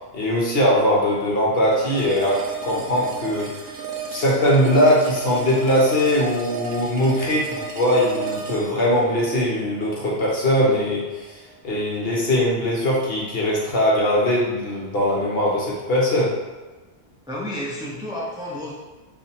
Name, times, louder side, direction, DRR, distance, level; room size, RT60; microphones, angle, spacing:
voice 1, 0.1-3.6 4.1-11.4 11.6-16.3, left 1 dB, 55° left, -4 dB, 1.2 m, -21 dB
sound 1, 1.7-10.7, right 5 dB, 90° right, 1.0 m, -34 dB
voice 2, 17.3-18.7, left 1 dB, 5° right, -4 dB, 0.4 m, -30 dB
5.2 x 2.5 x 3.4 m, 1.2 s
omnidirectional pair, 1.2 m